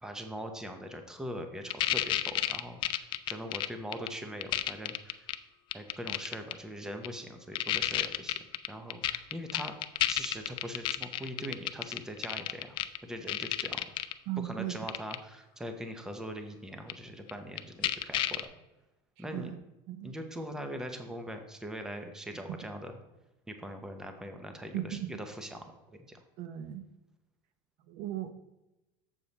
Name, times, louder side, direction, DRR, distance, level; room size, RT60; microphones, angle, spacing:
voice 1, 0.0-5.3 5.7-8.4 8.7-9.7 10.1-12.8 13.0-13.8 14.4-18.5 19.2-19.5 20.0-22.9 23.5-26.2, equal, 5° right, 6 dB, 0.7 m, -41 dB
sound 1, 1.7-4.1 4.4-5.3 5.7-6.5 7.0-7.1 7.6-13.0 13.3-14.1 14.9-15.2 16.9-17.0 17.3-17.4 17.6-18.4, left 14 dB, 40° left, 0.4 m, -30 dB
voice 2, 14.3-14.8 19.3-19.6 19.9-20.1 24.7-25.1 26.4-26.8 27.9-28.3, right 13 dB, 65° right, 10 dB, 0.7 m, -36 dB
7.2 x 7.0 x 4.0 m, 0.99 s
cardioid pair, 150°, 12 cm